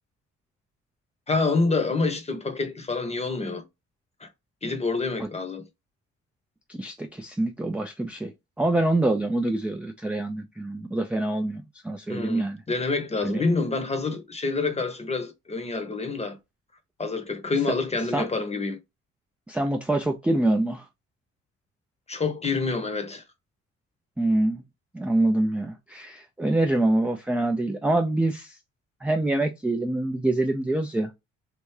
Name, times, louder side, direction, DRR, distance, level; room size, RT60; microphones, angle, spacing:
voice 1, 1.3-3.6 4.2-4.3 4.6-5.6 12.1-16.4 17.0-18.8 22.1-23.2, left 3 dB, 20° left, 0.8 m, -27 dB
voice 2, 6.7-8.3 8.6-12.6 13.2-13.4 18.1-18.3 19.5-20.8 24.2-24.6 24.9-28.6 29.0-31.1, right 2 dB, 5° right, 0.3 m, -25 dB
3.4 x 2.6 x 3.2 m
cardioid pair, 90°, 30 cm